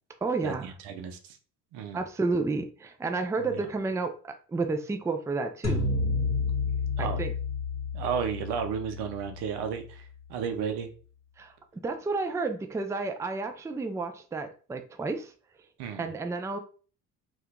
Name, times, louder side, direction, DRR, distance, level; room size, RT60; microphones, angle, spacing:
voice 1, 0.2-0.7 1.9-5.8 7.0-7.3 11.4-15.3 15.9-16.6, right 3 dB, 10° right, 0.4 m, -31 dB
voice 2, 0.8-1.2 1.7-2.0 3.5-3.6 7.0-7.2 7.9-10.0 10.3-10.9 15.8-16.1, right 7 dB, 80° right, 0.8 m, -32 dB
sound 1, 5.6-10.0, left 4 dB, 45° left, 0.9 m, -30 dB
2.7 x 2.5 x 3.6 m
supercardioid pair, 70°, 39 cm